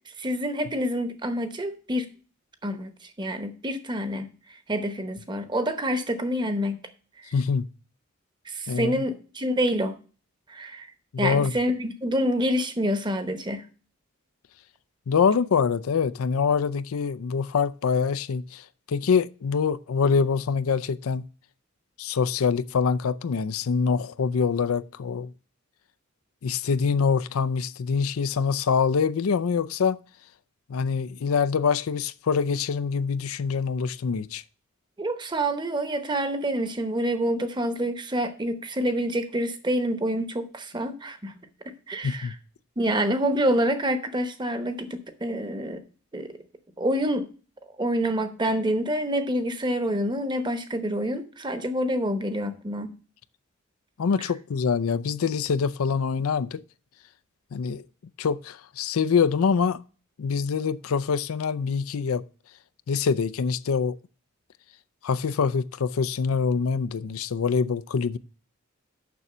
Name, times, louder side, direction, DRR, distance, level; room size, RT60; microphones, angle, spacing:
voice 1, 0.2-2.1 2.6-4.3 4.7-6.8 8.5-9.9 10.5-10.9 11.2-13.6 35.0-41.5 41.9-42.4 42.8-45.8 46.1-46.3 46.8-47.3 47.8-52.9 54.2-54.3, equal, 20° right, 0.9 m, -27 dB
voice 2, 7.3-7.7 8.7-9.0 11.1-11.5 15.1-21.3 22.0-25.3 26.4-30.0 30.7-34.4 42.0-42.3 54.0-56.6 57.5-57.8 58.2-59.8 60.2-62.2 62.9-63.9 65.0-68.2, left 5 dB, 90° left, 0.5 m, -25 dB
6.9 x 6.0 x 6.6 m
head